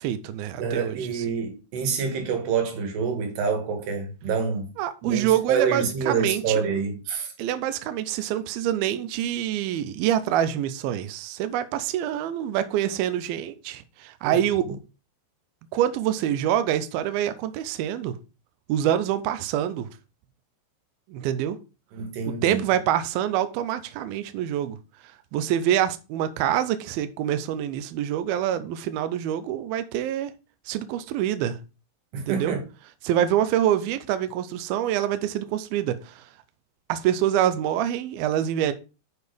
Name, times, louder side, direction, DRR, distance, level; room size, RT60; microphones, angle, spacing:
voice 1, 0.0-1.2 4.8-6.6 7.4-14.8 15.7-18.2 18.7-19.9 21.1-21.6 22.3-24.8 25.3-30.3 30.7-31.6 32.1-32.5 33.0-36.3 36.9-38.7, right 11 dB, 85° right, 2.1 m, -26 dB
voice 2, 0.6-4.7 5.0-7.3 14.2-14.4 21.9-22.6 32.1-32.6, right 6 dB, 65° right, 3.8 m, -27 dB
6.8 x 6.4 x 5.2 m
omnidirectional pair, 5.3 m